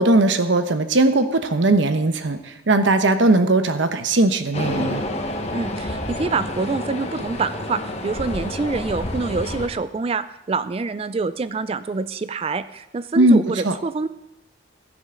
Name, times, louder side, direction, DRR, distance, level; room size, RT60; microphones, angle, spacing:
voice 1, 0.0-5.0 13.2-13.7, right 2 dB, 80° right, 9 dB, 1.0 m, -18 dB
sound 1, 4.5-9.7, left 1 dB, 35° left, 1.2 m, -29 dB
voice 2, 5.5-14.1, right 4 dB, 30° right, 13 dB, 0.3 m, -26 dB
15.5 x 10.0 x 3.8 m, 0.87 s
head